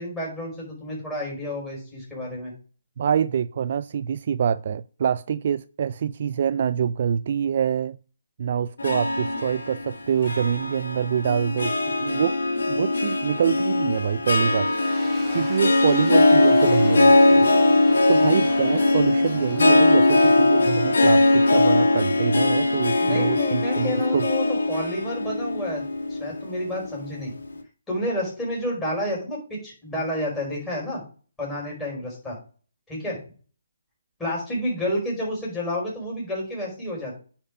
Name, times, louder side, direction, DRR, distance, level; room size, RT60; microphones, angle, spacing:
voice 1, 0.0-2.5 23.0-25.8 26.1-27.3 27.9-31.0 31.4-32.4 32.9-33.2 34.2-37.2, left 1 dB, 10° left, 5.0 m, -30 dB
voice 2, 3.0-8.0 8.4-12.4 12.7-17.5 18.1-24.3, right 8 dB, 45° right, 0.3 m, -25 dB
Harp, 8.8-27.2, left 2 dB, 80° left, 1.9 m, -20 dB
sound 1, 14.3-25.2, right 3 dB, 10° right, 2.2 m, -42 dB
9.8 x 4.4 x 5.0 m
hypercardioid pair, 165°, 0 cm